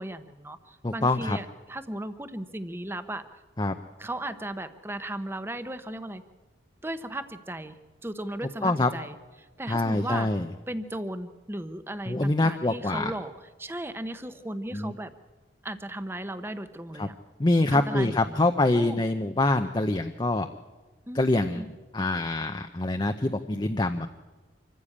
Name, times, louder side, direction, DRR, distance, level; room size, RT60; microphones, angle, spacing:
voice 1, 0.0-3.4 4.0-6.2 6.8-10.3 10.7-13.3 13.6-15.1 15.6-17.1 17.7-18.4 18.7-19.0 21.1-21.7, right 1 dB, 10° right, 11 dB, 0.9 m, -36 dB
voice 2, 0.8-1.4 3.6-3.7 8.6-8.9 9.7-10.5 12.1-13.1 14.7-14.9 17.0-17.1 17.4-20.5 21.1-21.7 21.9-24.1, left 2 dB, 25° left, 6 dB, 0.6 m, -25 dB
25.5 x 15.0 x 8.7 m, 1.3 s
head